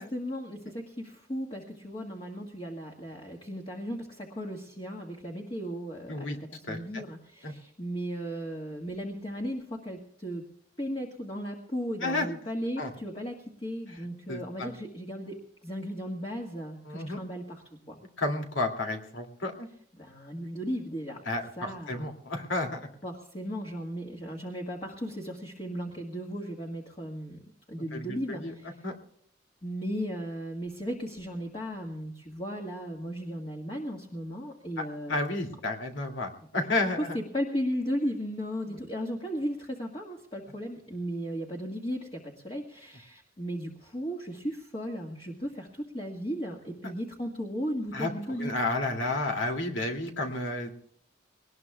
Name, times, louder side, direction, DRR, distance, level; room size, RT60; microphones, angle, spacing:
voice 1, 0.0-6.4 6.7-10.4 10.8-13.4 13.6-15.3 15.6-18.0 20.0-21.2 21.6-22.1 23.0-27.4 27.7-28.8 29.6-35.2 37.1-48.6, equal, 30° left, -1 dB, 1.7 m, -36 dB
voice 2, 6.7-7.0 7.4-7.5 12.0-12.3 12.8-12.9 14.3-14.7 16.9-17.2 18.2-19.7 21.3-22.9 27.9-28.5 28.8-29.0 34.8-37.2 47.9-48.1 48.4-50.7, left 2 dB, 80° left, 3 dB, 2.7 m, -31 dB
21.5 x 19.0 x 2.4 m, 0.64 s
head